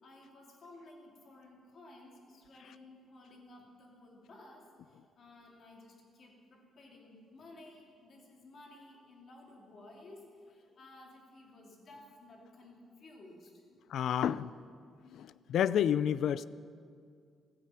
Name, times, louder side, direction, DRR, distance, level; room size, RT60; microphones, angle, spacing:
voice 1, 0.0-13.6 14.1-14.3, left 2 dB, 40° left, 0 dB, 2.7 m, -55 dB
voice 2, 13.9-14.5 15.1-16.4, left 9 dB, 60° left, 17 dB, 0.4 m, -30 dB
16.0 x 15.0 x 5.8 m, 2.2 s
cardioid pair, 175°, 0 cm